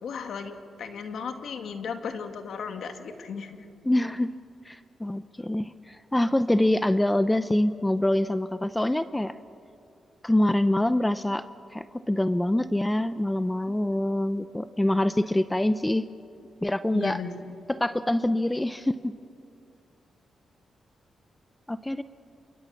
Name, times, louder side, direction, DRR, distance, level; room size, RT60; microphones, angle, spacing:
voice 1, 0.0-3.7 13.7-13.8 16.9-17.3, left 6 dB, 75° left, 6 dB, 2.2 m, -35 dB
voice 2, 3.8-4.4 4.7-9.3 10.2-11.5 11.7-16.1 16.6-17.2 17.7-19.1 21.7-22.0, left 1 dB, 10° left, 12 dB, 0.7 m, -25 dB
28.0 x 25.0 x 7.2 m, 2.5 s
cardioid pair, 85°, 0 cm